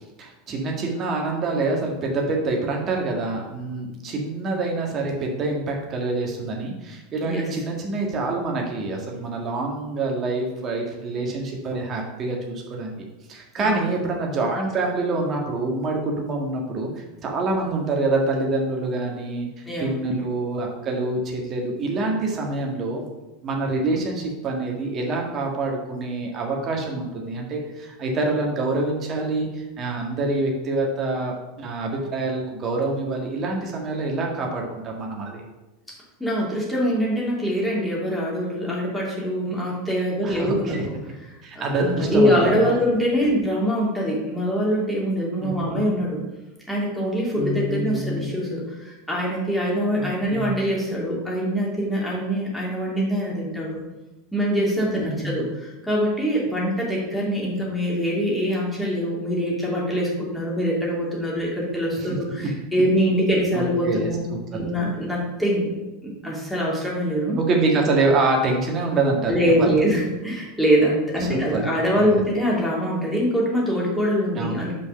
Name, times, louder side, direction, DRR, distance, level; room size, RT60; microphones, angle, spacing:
voice 1, 0.2-23.1 23.4-35.4 40.2-40.9 41.4-42.8 45.4-45.8 47.4-48.4 50.0-50.6 55.0-55.3 62.0-62.1 63.5-64.4 67.4-69.7 71.2-71.7 71.9-72.2 74.3-74.7, right 2 dB, 35° right, 0 dB, 1.6 m, -26 dB
voice 2, 36.2-40.8 41.6-46.2 46.7-53.8 54.3-64.2 64.5-65.7 66.0-67.4 69.3-74.7, equal, 5° left, -5 dB, 2.6 m, -23 dB
5.3 x 5.1 x 5.6 m, 1.1 s
figure-of-eight pair, 85°, 0 cm